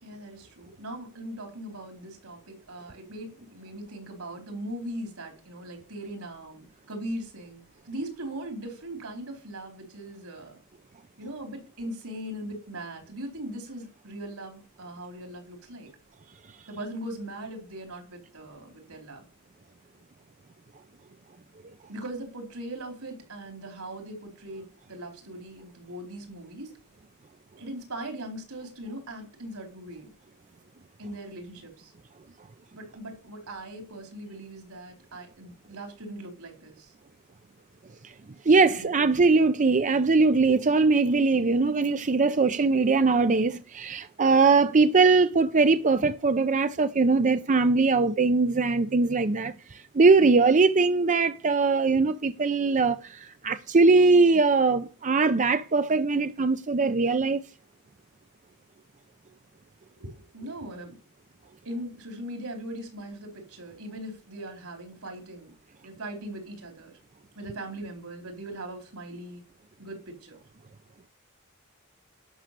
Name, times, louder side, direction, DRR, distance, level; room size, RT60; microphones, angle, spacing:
voice 1, 0.0-7.6 7.9-10.6 11.2-15.9 16.7-19.3 21.9-26.7 27.6-30.1 31.0-31.9 32.7-36.9 38.7-38.9 60.0-61.0 61.6-65.5 65.8-66.9 67.4-69.4 69.8-70.4, right 1 dB, 75° right, 4.4 m, -40 dB
voice 2, 38.4-57.4, right 4 dB, 35° right, 0.6 m, -21 dB
11.5 x 6.4 x 8.4 m
head